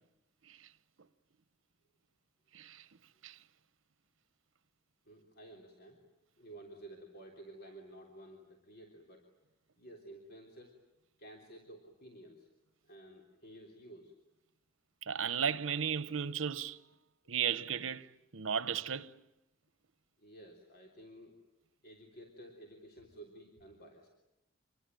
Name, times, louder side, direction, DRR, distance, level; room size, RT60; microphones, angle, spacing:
voice 1, 2.5-2.8 3.2-3.4 15.0-16.8 17.3-19.2, right 7 dB, 85° right, 0.9 m, -35 dB
voice 2, 5.1-6.0 6.4-9.3 9.8-10.8 11.2-12.5 12.8-14.2 20.2-21.4 21.8-24.1, right 1 dB, 55° left, 3.5 m, -53 dB
27.0 x 22.0 x 9.1 m
head